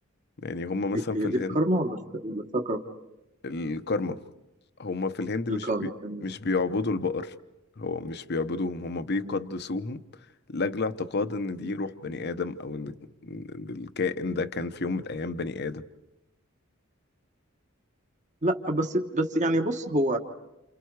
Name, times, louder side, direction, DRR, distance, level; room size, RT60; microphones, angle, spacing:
voice 1, 0.4-1.6 3.4-4.2 4.8-5.9 6.2-7.3 7.8-10.0 10.5-13.0 13.2-15.9, left 3 dB, 50° left, 0.9 m, -30 dB
voice 2, 0.9-2.0 2.2-2.8 5.5-6.2 9.2-9.4 18.4-20.2, right 1 dB, 35° right, 1.3 m, -27 dB
29.0 x 29.0 x 4.8 m
head